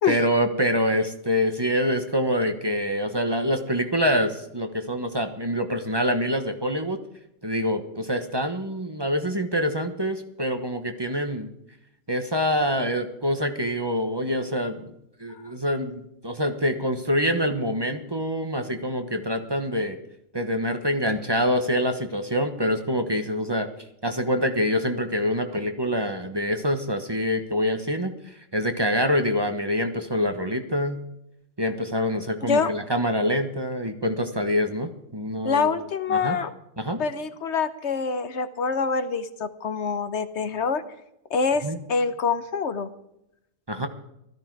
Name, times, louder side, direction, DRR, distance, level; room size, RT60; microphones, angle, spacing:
voice 1, 0.1-7.0 7.4-11.5 12.1-14.9 15.2-20.0 20.3-23.7 24.0-31.0 31.6-35.8 36.1-36.4 36.8-37.0 41.6-41.8 43.7-43.9, equal, 20° right, 6 dB, 1.2 m, -25 dB
voice 2, 35.4-36.5 37.0-40.8 41.3-42.9 43.8-43.9, left 5 dB, 80° left, 11 dB, 1.3 m, -25 dB
16.5 x 13.5 x 4.8 m, 0.82 s
omnidirectional pair, 1.1 m